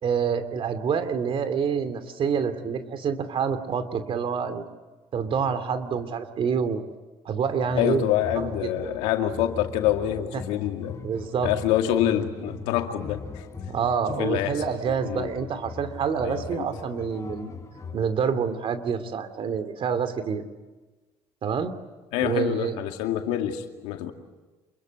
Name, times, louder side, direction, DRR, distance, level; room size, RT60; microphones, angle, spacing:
voice 1, 0.0-4.6 5.1-6.8 7.2-8.0 11.0-11.5 13.7-17.5 17.9-20.4 21.4-21.7 22.2-22.8, right 6 dB, 55° right, 10 dB, 2.9 m, -27 dB
sound 1, 7.7-18.0, left 4 dB, 25° left, 5.5 m, -40 dB
voice 2, 7.8-11.0 11.4-13.4 14.2-14.6 15.0-15.3 16.2-16.7 22.1-24.1, left 11 dB, 85° left, 5 dB, 2.4 m, -26 dB
27.5 x 22.5 x 9.4 m, 1.2 s
supercardioid pair, 85°, 11 cm